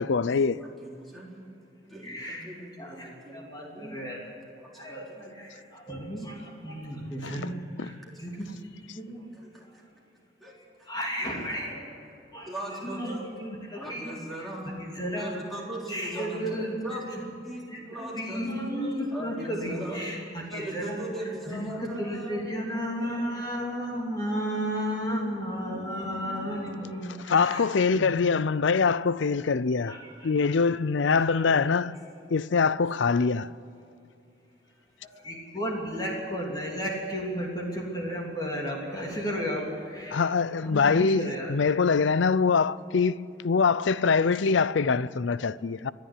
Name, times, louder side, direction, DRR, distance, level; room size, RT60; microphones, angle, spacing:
voice 1, 0.0-0.6 7.2-7.4 27.3-30.0 30.2-32.0 32.3-33.5 40.1-45.9, left 5 dB, 75° left, 0.5 m, -24 dB
voice 2, 0.6-1.4 1.8-4.1 4.6-5.3 6.2-6.4 8.1-8.4 9.2-9.8 10.4-10.9 11.2-12.0 12.4-14.8 15.1-18.8 19.1-20.1 20.5-23.8 31.0-31.1 31.5-31.6, right 1 dB, ahead, 3.7 m, -40 dB
voice 3, 2.0-2.5 2.8-4.2 4.7-9.2 9.6-9.8 10.6-11.9 12.3-14.1 14.4-14.5 14.8-15.4 15.9-17.0 17.7-27.7 27.9-28.3 29.8-30.6 31.1-31.4 35.2-40.3 40.6-41.6, equal, 20° left, 3.1 m, -34 dB
29.0 x 10.5 x 9.8 m
head